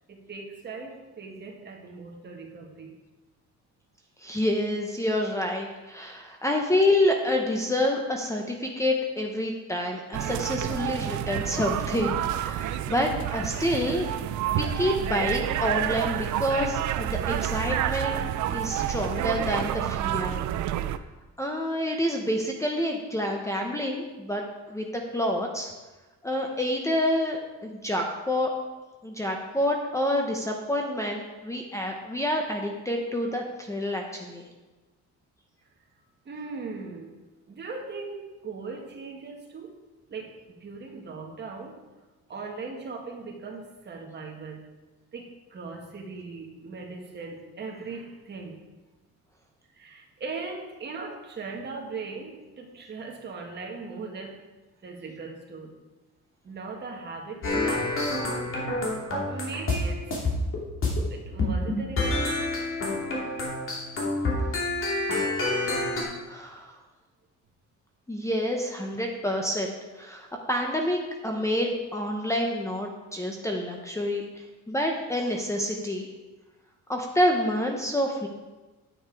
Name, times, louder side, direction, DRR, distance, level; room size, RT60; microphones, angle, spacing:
voice 1, 0.1-2.9 36.3-37.2 37.5-39.7 40.1-41.8 42.3-44.6 45.1-48.6 49.7-54.4 54.8-55.7 56.4-57.9 59.3-60.2 61.1-62.5, right 4 dB, 35° right, 1 dB, 1.7 m, -39 dB
voice 2, 4.2-14.1 14.6-18.2 18.5-20.4 21.4-24.4 24.7-25.7 26.2-28.5 29.0-34.5 66.3-66.8 68.1-76.1 76.9-78.3, left 1 dB, 10° left, 2 dB, 0.8 m, -28 dB
sound 1, 10.1-21.0, right 12 dB, 80° right, 0.5 m, -29 dB
sound 2, 57.4-59.8 60.1-61.0 61.4-66.0, left 2 dB, 45° left, 2.7 m, -28 dB
9.6 x 9.0 x 4.7 m, 1.2 s
cardioid pair, 155°, 29 cm